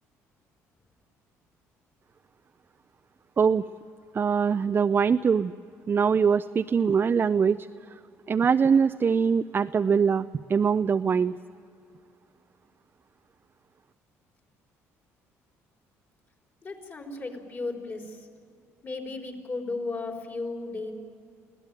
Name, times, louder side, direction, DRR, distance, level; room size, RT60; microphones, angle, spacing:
voice 1, 4.1-5.5 5.9-7.7 8.3-11.3, right 6 dB, 35° right, 10 dB, 0.5 m, -23 dB
voice 2, 16.6-18.3 18.8-20.9, left 3 dB, 35° left, 3 dB, 4.2 m, -35 dB
24.0 x 16.0 x 8.9 m, 2.5 s
supercardioid pair, 80°, 6 cm